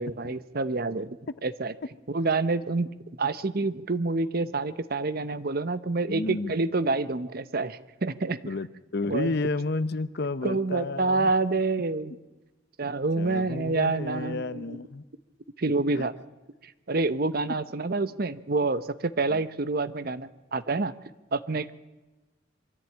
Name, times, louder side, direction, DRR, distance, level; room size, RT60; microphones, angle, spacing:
voice 1, 0.0-1.7 2.1-2.9 3.2-8.4 9.1-9.3 10.4-12.1 12.8-14.8 15.6-16.1 16.6-20.9 21.3-21.7, right 3 dB, 50° right, 14 dB, 0.8 m, -28 dB
voice 2, 6.1-6.6 8.4-11.3 13.2-15.0 15.9-16.1 19.3-19.4, left 3 dB, 55° left, 15 dB, 0.8 m, -31 dB
23.5 x 14.0 x 8.8 m, 1.1 s
head